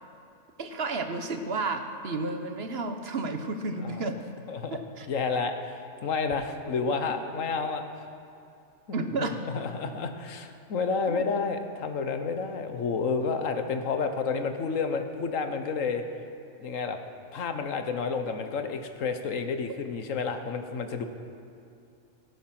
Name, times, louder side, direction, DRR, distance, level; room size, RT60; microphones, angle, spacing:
voice 1, 0.6-4.2 4.7-5.1 8.9-9.4 11.1-11.3, right 3 dB, 55° right, 6 dB, 1.2 m, -32 dB
voice 2, 4.5-4.8 5.1-7.8 9.2-16.0 16.6-17.0 17.3-21.0, left 5 dB, 90° left, 7 dB, 1.4 m, -30 dB
17.5 x 11.0 x 6.0 m, 2.6 s
omnidirectional pair, 1.3 m